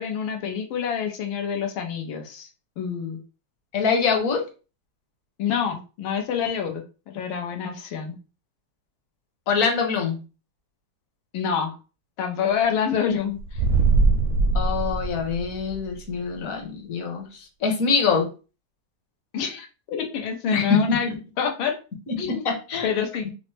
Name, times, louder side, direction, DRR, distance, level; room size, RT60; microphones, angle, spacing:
voice 1, 0.0-2.5 2.8-3.2 5.4-8.2 11.3-11.8 12.2-13.6 19.3-21.1 21.4-21.7 22.2-22.5 22.8-23.3, left 7 dB, 85° left, 4 dB, 1.6 m, -27 dB
voice 2, 3.7-4.4 9.5-10.2 14.5-18.3 20.5-21.0 22.1-22.9, left 5 dB, 50° left, 2 dB, 1.2 m, -24 dB
sound 1, 13.4-15.9, right 3 dB, 80° right, 1.4 m, -21 dB
5.5 x 2.0 x 3.2 m, 0.33 s
omnidirectional pair, 2.2 m